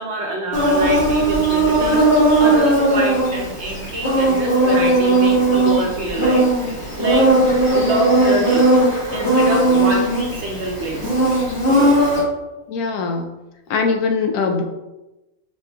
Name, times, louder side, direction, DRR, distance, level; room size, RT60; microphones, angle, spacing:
voice 1, 0.0-2.0 2.4-6.5 7.0-7.3 7.7-8.6 9.1-11.2, right 1 dB, 60° right, 0 dB, 0.8 m, -26 dB
Insect, 0.5-12.2, right 1 dB, 50° left, 1.3 m, -17 dB
voice 2, 12.7-13.3 13.7-14.6, left 4 dB, 90° left, 4 dB, 1.1 m, -21 dB
5.2 x 3.1 x 2.2 m, 1.0 s
omnidirectional pair, 1.5 m